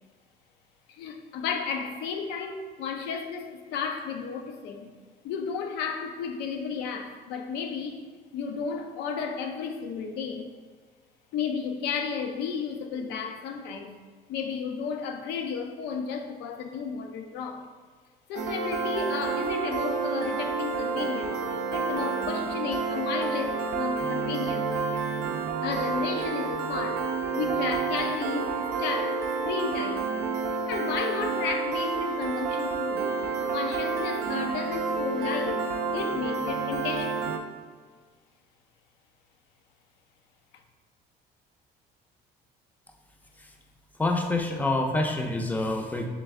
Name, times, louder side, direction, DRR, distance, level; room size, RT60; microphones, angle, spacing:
voice 1, 0.9-4.9 5.2-8.0 8.3-10.5 11.3-13.9 14.3-17.7 18.3-21.4 21.7-24.7 25.6-30.1 30.7-33.1 33.5-35.7 35.9-37.4, left 6 dB, 85° left, 5 dB, 0.5 m, -33 dB
Piano, 18.3-37.4, right 4 dB, 85° right, 0.4 m, -29 dB
voice 2, 44.0-46.1, left 2 dB, 10° left, 3 dB, 0.4 m, -26 dB
3.3 x 3.2 x 3.5 m, 1.5 s
cardioid pair, 110°, 17 cm